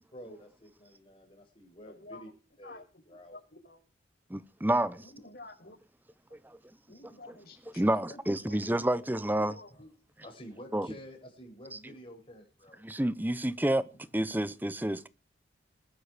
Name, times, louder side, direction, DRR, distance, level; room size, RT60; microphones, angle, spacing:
voice 1, 0.1-2.3 2.6-2.8 3.1-3.4 9.7-9.8 10.2-12.8, equal, 30° left, 7.3 m, -49 dB
voice 2, 1.8-2.2 2.6-2.8 3.3-3.8 5.0-5.8 6.9-7.8 8.1-9.9, left 2 dB, 55° left, 6.2 m, -50 dB
voice 3, 4.3-5.0 6.4-6.6 7.8-9.6 10.7-10.9 12.8-13.9 14.1-15.1, right 1 dB, 10° right, 0.8 m, -29 dB
20.5 x 12.5 x 5.0 m
head